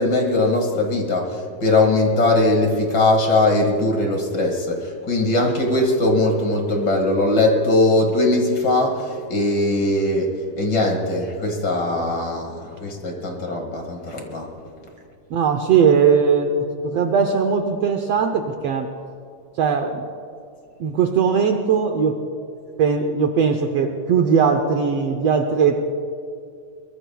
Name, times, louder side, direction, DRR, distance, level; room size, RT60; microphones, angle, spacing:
voice 1, 0.0-10.3 10.6-14.5, left 2 dB, 40° left, 2 dB, 2.0 m, -20 dB
voice 2, 15.3-16.5 16.8-18.9 19.6-20.0 20.8-22.2 22.8-25.8, right 6 dB, 85° right, 5 dB, 1.4 m, -19 dB
23.0 x 21.5 x 2.3 m, 2.4 s
omnidirectional pair, 3.8 m